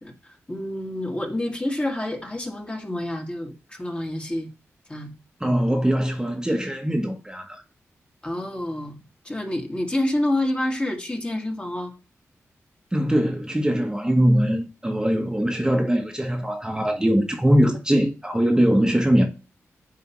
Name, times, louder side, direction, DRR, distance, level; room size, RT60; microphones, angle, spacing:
voice 1, 0.0-4.5 4.9-5.1 8.2-9.0 9.2-11.9, left 1 dB, 20° left, 1.8 m, -28 dB
voice 2, 5.4-7.6 12.9-19.3, equal, 10° right, 1.2 m, -21 dB
9.3 x 3.4 x 3.0 m
cardioid pair, 55°, 5 cm